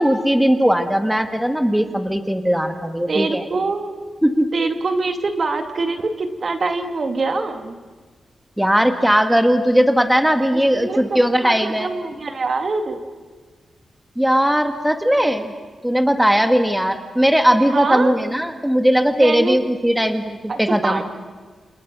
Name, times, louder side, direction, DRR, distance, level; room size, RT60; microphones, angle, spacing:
voice 1, 0.0-3.4 4.2-4.5 8.6-11.9 14.2-15.5 15.8-21.0, equal, 5° right, 8 dB, 1.9 m, -18 dB
voice 2, 3.1-3.9 4.5-7.8 10.4-13.0 17.7-18.1 19.2-19.6 20.5-21.0, right 3 dB, 55° right, 7 dB, 2.2 m, -24 dB
29.0 x 27.5 x 6.2 m, 1.5 s
cardioid pair, 75°, 0 cm